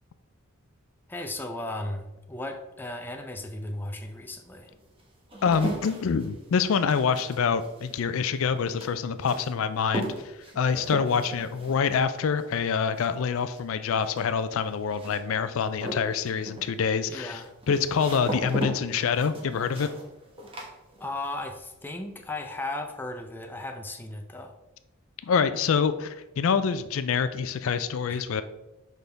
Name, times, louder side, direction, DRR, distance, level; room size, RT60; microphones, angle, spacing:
voice 1, 1.1-4.7 17.1-17.5 21.0-24.5 28.1-28.2, left 2 dB, 10° left, 4 dB, 0.5 m, -36 dB
sound 1, 3.5-3.6 4.3-21.4 21.7-22.3, right 1 dB, 25° right, 1.1 m, -38 dB
voice 2, 5.4-10.1 10.6-17.4 17.7-19.9 25.2-28.4, left 6 dB, 70° left, 12 dB, 0.4 m, -26 dB
6.3 x 5.2 x 3.4 m, 0.99 s
head